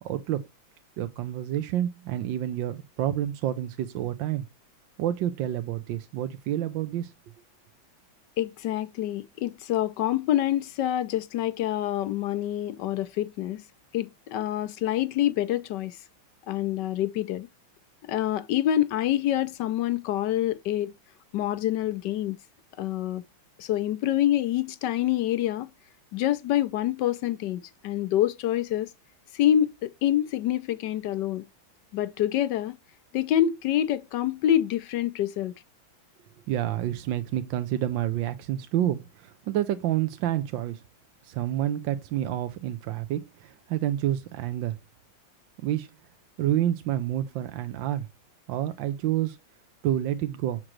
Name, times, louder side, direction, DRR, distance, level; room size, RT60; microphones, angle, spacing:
voice 1, 0.0-0.5 1.0-4.4 5.0-7.1 36.5-40.8 41.2-44.8 45.6-45.9 46.4-48.1 48.5-49.4 49.8-50.6, right 12 dB, 75° right, 1.4 m, -28 dB
voice 2, 8.4-13.6 13.9-16.0 16.5-17.5 18.0-20.9 21.3-22.4 22.8-23.2 23.6-25.7 26.1-28.9 29.3-31.5 31.9-32.8 33.1-35.5, left 12 dB, 70° left, 1.2 m, -26 dB
7.5 x 6.3 x 3.1 m
omnidirectional pair, 2.2 m